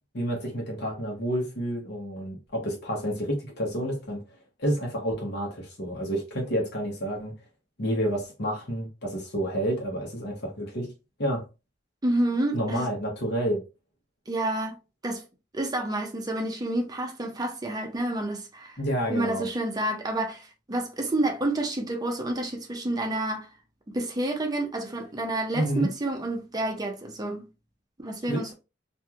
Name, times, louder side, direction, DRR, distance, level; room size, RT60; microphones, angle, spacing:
voice 1, 0.1-4.2 4.6-7.3 7.8-10.9 11.2-11.4 12.5-13.6 18.8-19.4 25.5-25.9 28.3-28.5, equal, 60° left, 1.0 m, -29 dB
voice 2, 12.0-12.9 14.3-14.8 15.0-15.2 15.5-18.8 19.1-23.5 23.9-27.5 28.0-28.5, right 1 dB, 20° right, 0.6 m, -29 dB
3.0 x 2.6 x 2.4 m
head